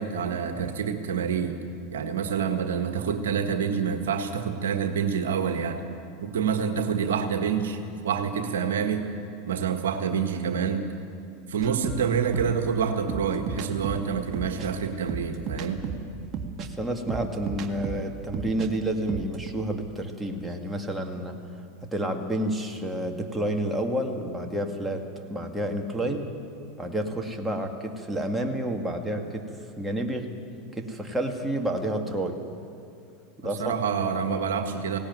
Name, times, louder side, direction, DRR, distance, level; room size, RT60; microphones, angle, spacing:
voice 1, 0.0-1.6 1.9-5.8 6.2-7.8 8.0-9.1 9.5-10.8 11.5-15.8 33.6-35.0, right 7 dB, 75° right, 7 dB, 1.5 m, -27 dB
sound 1, 11.6-18.7 19.0-19.5, right 5 dB, 35° right, 1.9 m, -34 dB
voice 2, 16.7-21.4 21.9-25.0 25.3-26.2 26.8-29.5 29.8-30.3 30.7-32.4 33.4-33.8 34.3-34.5, right 1 dB, 10° right, 2 dB, 2.2 m, -29 dB
18.0 x 17.5 x 9.4 m, 2.4 s
hypercardioid pair, 90°, 0 cm